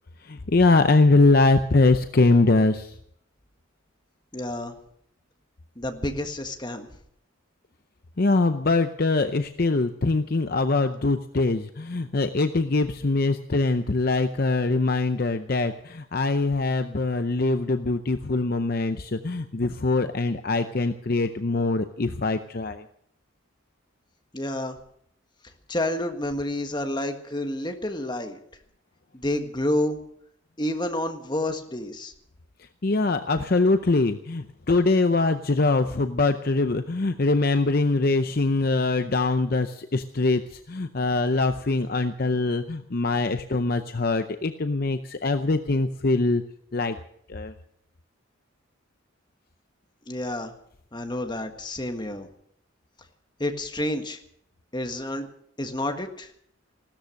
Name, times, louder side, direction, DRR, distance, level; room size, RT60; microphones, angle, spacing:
voice 1, 0.3-2.9 8.2-22.8 32.8-40.4 40.7-46.4 46.7-47.0 47.3-47.5, left 3 dB, 45° left, 9 dB, 0.6 m, -23 dB
voice 2, 4.3-4.8 5.8-6.9 24.3-24.8 25.7-28.4 29.1-30.0 30.6-32.1 50.1-50.5 50.9-52.3 53.4-54.2 54.7-55.3 55.6-56.3, left 1 dB, 20° left, 5 dB, 1.5 m, -29 dB
16.0 x 13.5 x 6.5 m, 0.68 s
head